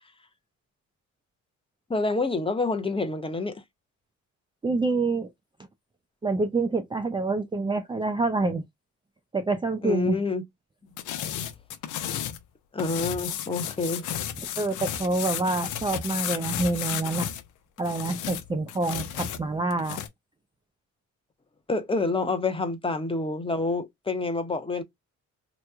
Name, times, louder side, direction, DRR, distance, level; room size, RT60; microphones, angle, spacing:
voice 1, 1.9-3.6 9.8-10.4 12.7-14.0 21.7-24.8, left 3 dB, 20° left, 0.8 m, -27 dB
voice 2, 4.6-5.3 6.2-8.6 9.3-10.2 14.6-17.3 17.8-20.0, right 3 dB, 15° right, 0.4 m, -27 dB
sound 1, 11.0-12.4 12.8-17.4 17.8-20.1, left 10 dB, 85° left, 0.7 m, -33 dB
3.0 x 2.2 x 3.4 m
cardioid pair, 90°, 30 cm